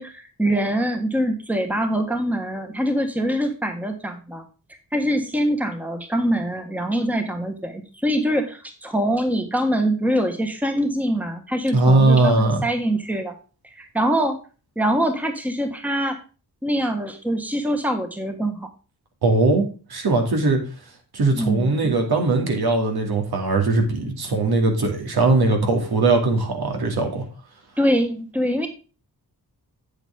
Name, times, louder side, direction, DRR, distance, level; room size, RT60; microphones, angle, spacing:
voice 1, 0.0-4.4 4.9-13.3 13.8-14.4 14.8-16.2 16.6-18.7 21.3-21.9 27.8-28.7, equal, 5° right, 5 dB, 1.4 m, -24 dB
voice 2, 11.7-12.6 19.2-20.6 21.1-27.2, right 2 dB, 75° right, 3 dB, 2.6 m, -20 dB
8.4 x 8.2 x 3.6 m, 0.34 s
wide cardioid pair, 135°, 38 cm